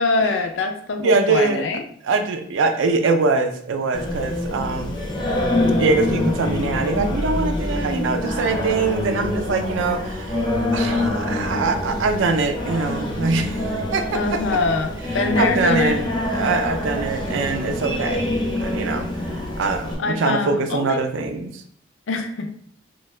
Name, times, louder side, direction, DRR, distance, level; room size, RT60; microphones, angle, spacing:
voice 1, 0.0-1.8 14.1-16.0 20.0-21.0 22.1-22.5, left 3 dB, 80° left, 6 dB, 0.4 m, -23 dB
voice 2, 1.0-1.7 2.0-5.0 5.8-14.4 15.3-16.0 16.3-19.1 19.6-21.6, right 3 dB, 80° right, 7 dB, 0.4 m, -23 dB
Singing, 3.9-19.9, left 1 dB, 20° left, 0.5 m, -25 dB
2.7 x 2.2 x 3.2 m, 0.63 s
head